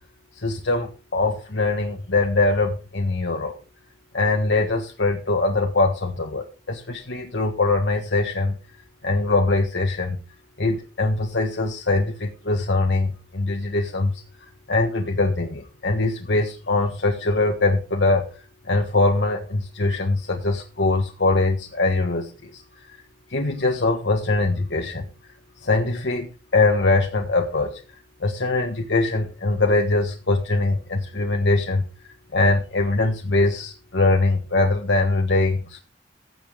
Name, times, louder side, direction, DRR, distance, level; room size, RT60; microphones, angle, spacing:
voice 1, 0.4-3.6 4.1-8.5 9.0-10.2 10.6-14.2 14.7-22.6 22.9-23.0 23.3-25.1 25.6-27.8 28.2-35.8, left 2 dB, 70° left, 2 dB, 1.5 m, -22 dB
15.5 x 7.1 x 3.6 m, 0.33 s
head